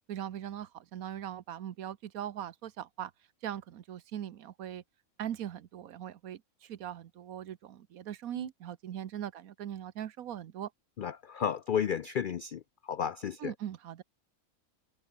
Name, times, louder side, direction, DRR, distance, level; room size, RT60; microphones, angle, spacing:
voice 1, 0.1-3.1 3.4-4.8 5.2-10.7 13.4-14.0, right 10 dB, 80° right, 1.3 m, -40 dB
voice 2, 11.0-12.6 12.9-13.5, left 8 dB, 75° left, 0.4 m, -32 dB
omnidirectional pair, 1.5 m